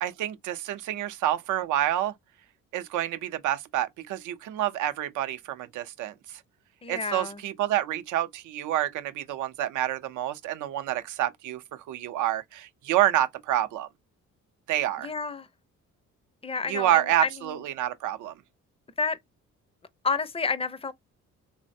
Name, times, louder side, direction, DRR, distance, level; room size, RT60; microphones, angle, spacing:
voice 1, 0.0-2.1 2.7-6.4 6.9-13.9 14.7-15.1 16.7-18.3, right 12 dB, 80° right, 0.5 m, -28 dB
voice 2, 6.8-7.4 15.0-15.5 16.4-17.6 19.0-19.2 20.0-20.9, left 4 dB, 20° left, 0.4 m, -30 dB
3.3 x 2.0 x 2.5 m
cardioid pair, 90°, 30 cm